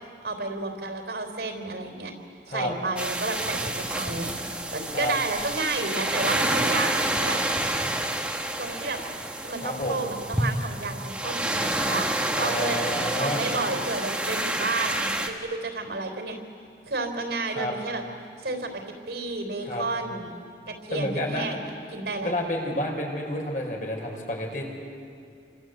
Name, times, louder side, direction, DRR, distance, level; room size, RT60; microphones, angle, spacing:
voice 1, 0.2-2.1 2.5-4.3 4.7-7.4 8.6-9.0 9.4-12.1 12.4-12.8 13.2-16.4 16.9-18.0 18.4-18.8 19.1-20.3 20.7-21.6 21.9-22.3, right 3 dB, 70° right, 4 dB, 3.8 m, -31 dB
sound 1, 3.0-15.3, right 1 dB, 5° right, 1.5 m, -28 dB
voice 2, 9.6-10.1 12.4-13.4 17.5-17.7 19.6-19.8 20.9-21.5 22.2-24.6, left 1 dB, 50° left, 1 dB, 5.1 m, -30 dB
29.0 x 25.5 x 8.1 m, 2.3 s
head